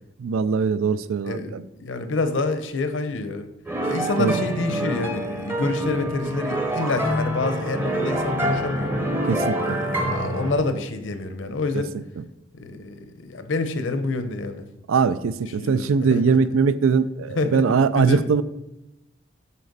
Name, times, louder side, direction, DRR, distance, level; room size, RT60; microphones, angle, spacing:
voice 1, 0.2-1.6 4.2-4.4 9.3-9.8 14.9-18.4, right 5 dB, 85° right, 15 dB, 0.4 m, -21 dB
voice 2, 1.2-3.5 3.8-8.9 9.6-11.9 12.5-14.6 15.6-16.4 17.4-17.6 17.9-18.3, left 3 dB, 70° left, 9 dB, 0.7 m, -27 dB
sound 1, 3.7-10.5, right 1 dB, 10° right, 0.7 m, -26 dB
9.9 x 4.3 x 4.0 m, 0.92 s
head